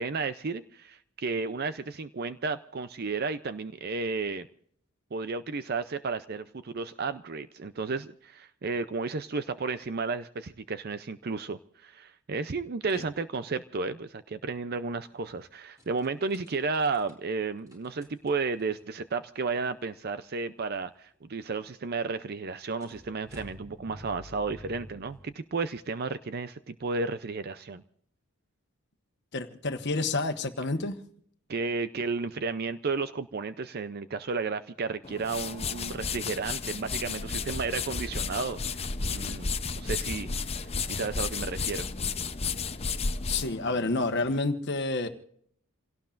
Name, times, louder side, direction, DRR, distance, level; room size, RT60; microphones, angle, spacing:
voice 1, 0.0-4.5 5.1-27.8 31.5-40.3 40.5-41.9, right 4 dB, 45° right, 12 dB, 0.5 m, -33 dB
sound 1, 15.0-15.4 15.8-17.1 17.7-18.9 19.7-19.8 19.9-20.0 22.8-25.3, left 1 dB, 15° right, 3.9 m, -49 dB
voice 2, 29.3-30.9 43.2-45.1, left 2 dB, 50° left, 7 dB, 1.3 m, -29 dB
sound 2, 35.0-44.4, left 5 dB, 30° left, 0.7 m, -33 dB
28.5 x 17.5 x 2.5 m, 0.63 s
head